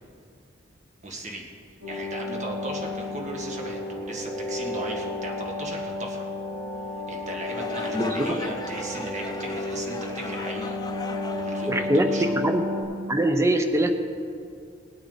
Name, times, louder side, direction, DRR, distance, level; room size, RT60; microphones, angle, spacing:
voice 1, 1.0-1.5 1.9-6.3 7.1-12.3, right 2 dB, 40° right, 0 dB, 1.9 m, -37 dB
sound 1, 1.8-12.8, left 2 dB, 65° right, 3.7 m, -32 dB
sound 2, 7.4-12.6, left 2 dB, 20° left, 0.7 m, -39 dB
voice 2, 7.9-8.4 11.7-12.6 13.1-13.9, right 1 dB, 15° right, 6 dB, 0.8 m, -23 dB
19.5 x 8.6 x 4.1 m, 2.3 s
head